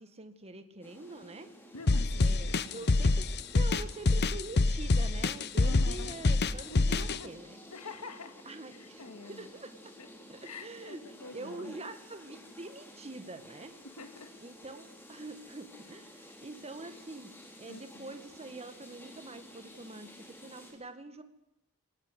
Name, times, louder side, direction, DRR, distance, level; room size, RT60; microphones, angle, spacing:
voice 1, 0.0-1.5 2.2-3.3 3.5-7.6 8.5-9.7 10.3-13.7 14.4-17.3 17.6-21.2, right 2 dB, 30° right, 9 dB, 1.9 m, -45 dB
sound 1, 0.8-20.7, equal, 10° left, 5.2 m, -53 dB
voice 2, 1.7-2.9 5.6-6.2 6.7-7.3 7.7-8.3 8.7-9.5 10.0-10.1 10.4-11.7 13.8-14.3 17.7-18.2, left 3 dB, 80° left, 7 dB, 2.0 m, -46 dB
sound 2, 1.9-7.2, left 3 dB, 50° left, 0.8 m, -26 dB
24.5 x 19.0 x 8.3 m, 0.80 s
head